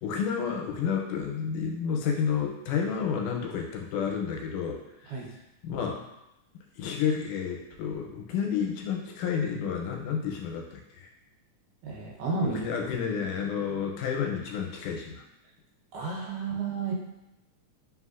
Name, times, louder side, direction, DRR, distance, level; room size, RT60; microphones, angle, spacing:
voice 1, 0.0-5.4 5.6-6.1 6.8-11.1 12.4-15.2, left 7 dB, 85° left, 1 dB, 2.1 m, -30 dB
voice 2, 11.8-12.6 15.9-16.9, right 4 dB, 85° right, -2 dB, 2.4 m, -31 dB
4.5 x 3.6 x 2.4 m, 0.93 s
omnidirectional pair, 3.6 m